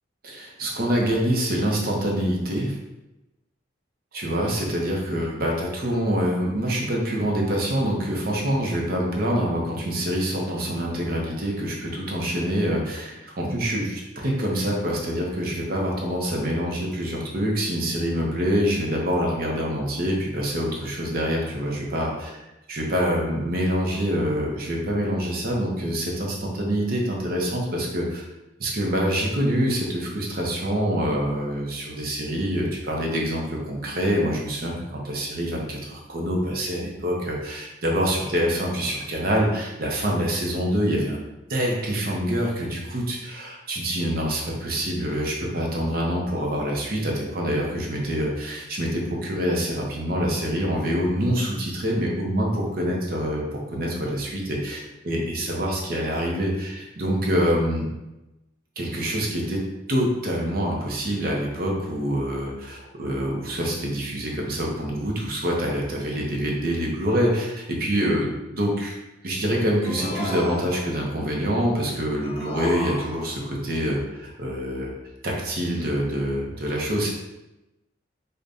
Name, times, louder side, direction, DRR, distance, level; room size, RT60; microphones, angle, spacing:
voice 1, 0.2-2.7 4.1-22.4 22.7-28.3 28.6-41.2 41.5-54.8 55.0-57.9 58.8-59.6 59.9-68.9 69.2-74.9 75.2-77.1, equal, 55° right, -1 dB, 0.7 m, -26 dB
sound 1, 69.8-71.2 72.2-73.6, left 1 dB, 30° left, 0.4 m, -34 dB
5.0 x 2.2 x 2.6 m, 0.98 s
head